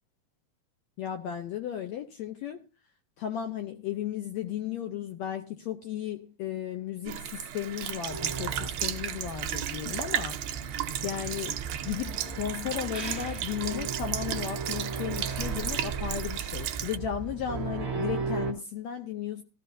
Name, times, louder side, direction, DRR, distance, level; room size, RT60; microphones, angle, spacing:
voice 1, 1.0-2.6 3.2-10.4 11.0-11.6 11.8-19.4, left 10 dB, 75° left, 1.6 m, -35 dB
Sink (filling or washing) / Liquid, 7.1-17.0, right 11 dB, 70° right, 1.6 m, -35 dB
sound 1, 8.1-18.5, right 5 dB, 55° right, 0.7 m, -36 dB
15.0 x 14.0 x 2.7 m
omnidirectional pair, 4.0 m